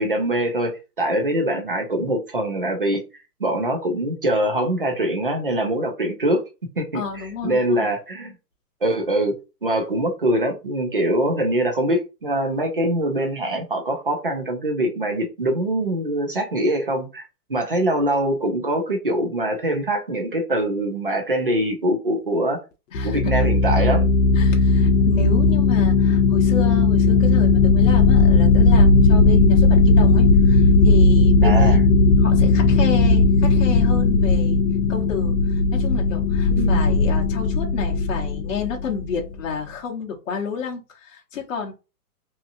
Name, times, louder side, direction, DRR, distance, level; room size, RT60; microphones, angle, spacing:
voice 1, 0.0-3.0 3.4-6.4 6.8-8.3 8.8-17.2 17.5-22.6 23.0-24.1 29.3-29.6 31.4-31.8 36.5-36.8, right 1 dB, 35° right, 0.4 m, -23 dB
voice 2, 6.9-7.9 22.9-23.3 24.3-31.8 32.2-34.6 34.9-41.7, left 6 dB, 50° left, 0.9 m, -30 dB
sound 1, 22.9-39.2, left 3 dB, 85° left, 0.7 m, -16 dB
2.7 x 2.7 x 2.5 m
hypercardioid pair, 180°, 48 cm